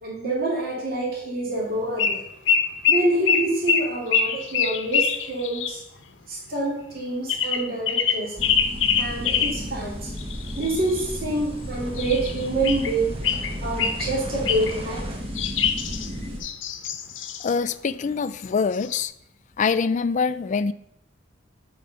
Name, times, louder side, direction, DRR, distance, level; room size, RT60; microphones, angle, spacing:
voice 1, 0.0-2.2 2.9-5.8 6.3-8.4 9.0-10.1 10.6-13.1 13.6-15.2, right 2 dB, 50° right, -4 dB, 2.6 m, -27 dB
sound 1, 2.0-2.2 2.5-5.8 7.3-9.6 10.2-11.2 12.0-13.0 13.2-14.1 14.4-14.8 15.3-17.5 18.4-18.5 18.7-19.0, left 7 dB, 90° left, 0.9 m, -24 dB
sound 2, 8.4-16.4, equal, 30° right, 1.5 m, -33 dB
voice 2, 17.4-19.1 19.6-20.7, left 5 dB, 40° left, 14 dB, 0.4 m, -24 dB
7.7 x 4.8 x 6.9 m, 0.75 s
head